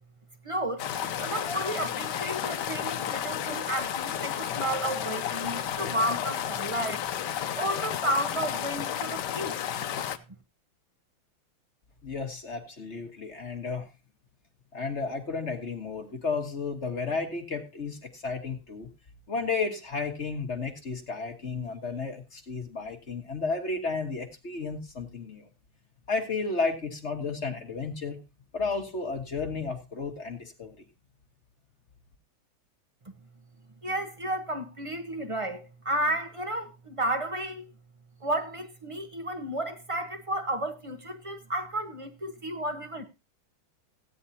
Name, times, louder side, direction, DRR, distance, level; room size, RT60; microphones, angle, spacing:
voice 1, 0.4-0.9 1.2-7.0 7.5-9.6 33.8-37.7 38.2-43.0, right 1 dB, 25° right, 0.7 m, -32 dB
sound 1, 0.8-10.2, left 10 dB, 65° left, 1.3 m, -32 dB
voice 2, 12.0-13.9 14.7-18.9 19.3-25.5 26.1-28.2 28.5-30.8, left 4 dB, 35° left, 1.5 m, -33 dB
15.5 x 9.7 x 2.8 m
omnidirectional pair, 2.2 m